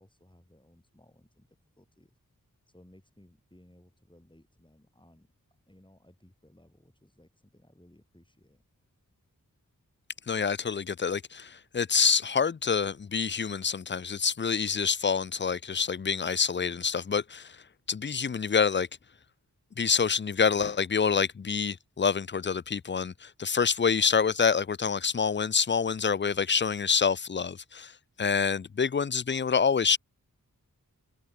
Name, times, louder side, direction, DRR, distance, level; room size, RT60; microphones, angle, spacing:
voice 1, 0.0-2.2 2.7-5.3 5.7-8.6, left 1 dB, 15° left, 6.7 m, -60 dB
voice 2, 10.3-17.6 17.9-18.9 19.8-27.9 28.2-30.0, left 6 dB, 35° left, 0.5 m, -27 dB
open air
wide cardioid pair, 55°, 34 cm